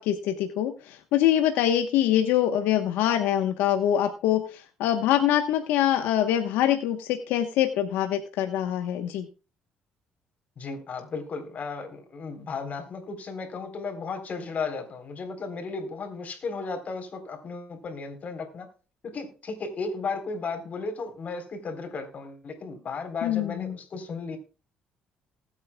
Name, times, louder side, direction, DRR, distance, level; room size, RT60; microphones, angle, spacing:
voice 1, 0.0-9.3 23.2-23.8, left 11 dB, 90° left, 6 dB, 1.1 m, -24 dB
voice 2, 10.6-18.7 19.0-24.4, left 4 dB, 50° left, 7 dB, 3.7 m, -35 dB
20.0 x 8.7 x 2.3 m, 0.34 s
cardioid pair, 85°, 3 cm